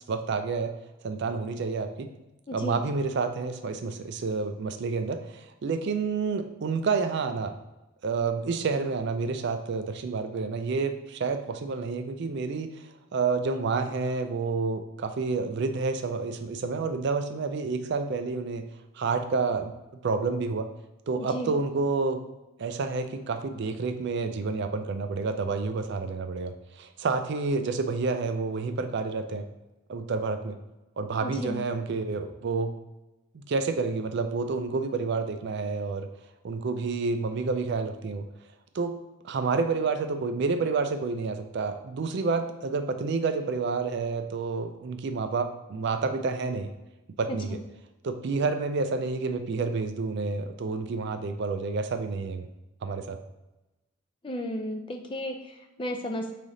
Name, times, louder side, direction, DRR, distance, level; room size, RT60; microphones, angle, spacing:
voice 1, 0.1-0.7 1.0-2.1 2.5-7.6 8.0-12.8 13.1-18.7 18.9-19.7 20.0-20.7 21.1-22.2 22.6-29.5 29.9-30.6 31.0-32.7 33.3-36.1 36.4-38.2 38.7-38.9 39.2-46.7 47.2-47.6 48.0-52.5 52.8-53.2, right 4 dB, 50° right, 8 dB, 0.3 m, -29 dB
voice 2, 2.5-2.8 21.2-21.5 31.2-31.7 47.5-47.6 54.2-56.3, equal, 25° left, 4 dB, 0.3 m, -34 dB
3.7 x 3.4 x 3.9 m, 1.0 s
head